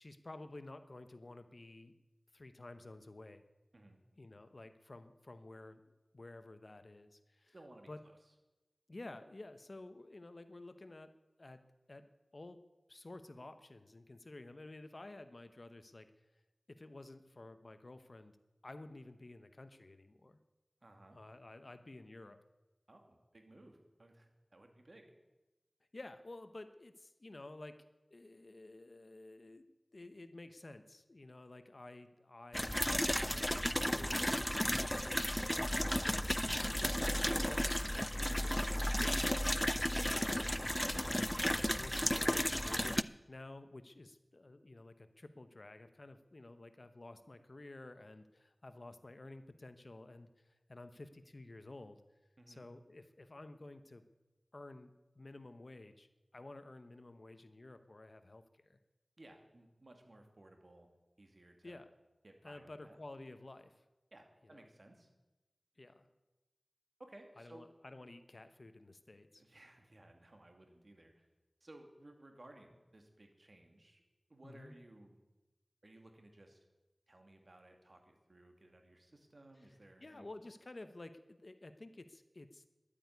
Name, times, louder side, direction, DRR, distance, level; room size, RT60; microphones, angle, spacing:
voice 1, 0.0-1.9 2.3-3.4 4.2-7.5 7.9-8.0 8.9-16.1 16.7-18.4 18.6-20.4 21.1-22.4 25.9-32.9 33.3-34.7 35.0-35.4 36.1-41.5 41.7-52.0 52.5-54.0 54.5-58.8 61.6-61.9 62.4-63.8 64.4-64.6 65.8-66.1 67.4-69.4 74.4-74.7 79.6-79.7 80.0-82.6, left 2 dB, 60° left, 11 dB, 0.9 m, -52 dB
voice 2, 7.5-7.9 20.8-21.2 22.9-25.1 52.4-52.7 59.2-60.9 61.2-61.8 62.2-63.0 64.1-65.1 67.0-67.7 69.4-71.3 71.6-74.0 74.3-75.2 75.8-76.6 77.1-80.3, right 1 dB, 60° right, 4 dB, 2.5 m, -59 dB
sound 1, 32.5-43.0, equal, 10° left, 0.4 m, -34 dB
12.0 x 8.7 x 9.5 m, 1.1 s
wide cardioid pair, 40°, 0 cm